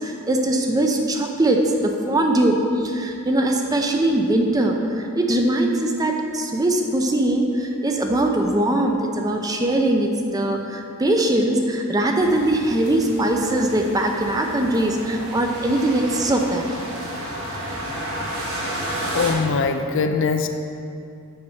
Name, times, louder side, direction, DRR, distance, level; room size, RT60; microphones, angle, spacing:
voice 1, 0.0-16.6, right 1 dB, 15° right, 2 dB, 0.5 m, -21 dB
sound 1, 12.2-19.3, right 1 dB, 75° right, 1.6 m, -32 dB
voice 2, 19.1-20.5, left 4 dB, 60° left, 7 dB, 0.4 m, -22 dB
7.9 x 4.6 x 5.5 m, 2.5 s
head